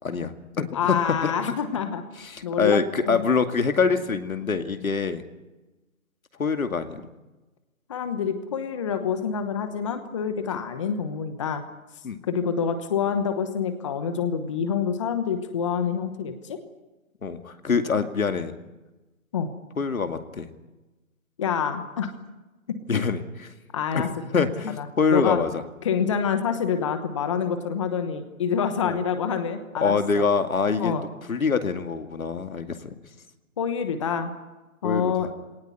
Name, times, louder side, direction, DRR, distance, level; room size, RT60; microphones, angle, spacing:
voice 1, 0.0-1.3 2.2-5.2 6.4-7.0 12.0-12.2 17.2-18.5 19.8-20.5 22.9-23.5 23.9-25.5 28.8-29.0 29.8-30.9 31.3-32.9 34.8-35.1, left 5 dB, 75° left, 8 dB, 2.4 m, -25 dB
voice 2, 0.7-2.0 2.4-3.2 7.9-11.6 12.2-16.6 19.3-19.5 21.4-22.1 22.7-22.8 23.7-24.1 24.4-24.5 24.8-25.4 25.8-30.2 30.8-31.1 33.6-34.3 34.8-35.3, left 7 dB, 20° left, 8 dB, 1.1 m, -27 dB
19.5 x 18.5 x 9.6 m, 1.1 s
hypercardioid pair, 165°, 42 cm